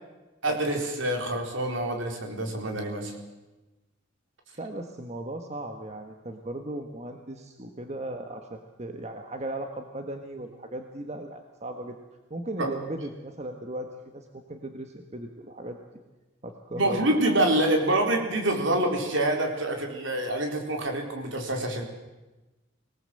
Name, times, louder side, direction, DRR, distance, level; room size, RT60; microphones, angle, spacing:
voice 1, 0.4-3.1 12.6-12.7 16.7-21.8, right 1 dB, 65° right, 3 dB, 4.2 m, -26 dB
voice 2, 4.6-12.0 12.3-15.8 16.4-17.1, right 1 dB, 35° right, 5 dB, 1.5 m, -37 dB
25.0 x 19.0 x 7.8 m, 1.1 s
head